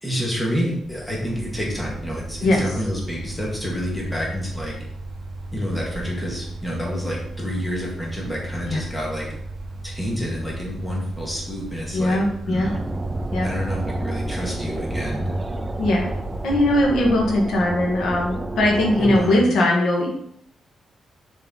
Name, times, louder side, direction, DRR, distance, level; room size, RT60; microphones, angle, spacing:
voice 1, 0.0-4.7 5.5-9.3 9.8-12.2 12.5-12.8 13.4-15.3 19.0-19.4, equal, 10° left, -3 dB, 2.1 m, -28 dB
Mechanical fan, 0.7-17.5, right 2 dB, 40° right, 1.3 m, -35 dB
voice 2, 11.9-12.7 13.3-13.5 15.8-16.1 16.4-20.1, left 1 dB, 75° left, -1 dB, 2.1 m, -20 dB
sound 1, 12.6-19.2, right 1 dB, 15° right, 0.5 m, -30 dB
6.9 x 4.8 x 5.6 m, 0.70 s
wide cardioid pair, 150°, 0 cm